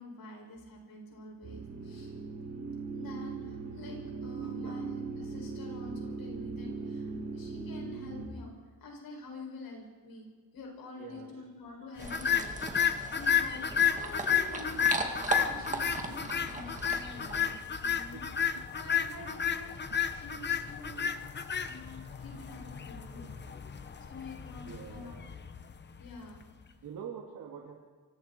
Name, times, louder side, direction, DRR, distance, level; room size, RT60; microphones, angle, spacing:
voice 1, 0.0-2.1 3.0-8.5 8.8-23.3 24.1-25.1 26.0-26.5, left 2 dB, 80° left, 1 dB, 6.9 m, -47 dB
sound 1, 1.4-8.3, right 4 dB, 45° right, 3.9 m, -39 dB
voice 2, 4.4-4.8 5.2-5.3 11.0-11.3 18.1-18.4 19.9-20.1 22.1-22.4 23.0-23.1 24.6-25.2 26.8-27.7, right 7 dB, 65° right, 0 dB, 2.5 m, -46 dB
sound 2, 12.0-26.4, left 8 dB, 30° left, 0.9 m, -32 dB
sound 3, 12.0-17.6, right 3 dB, 20° right, 1.8 m, -38 dB
30.0 x 24.5 x 4.6 m, 1.5 s
wide cardioid pair, 180°, 35 cm